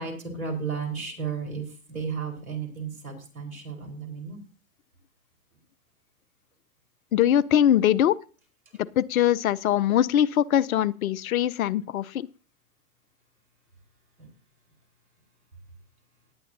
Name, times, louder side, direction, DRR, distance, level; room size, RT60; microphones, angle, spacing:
voice 1, 0.0-4.4 14.2-14.3, right 5 dB, 80° right, 3 dB, 4.4 m, -34 dB
voice 2, 7.1-8.2 9.0-12.3, left 11 dB, 75° left, 22 dB, 0.7 m, -22 dB
18.5 x 9.3 x 2.7 m, 0.36 s
hypercardioid pair, 105°, 42 cm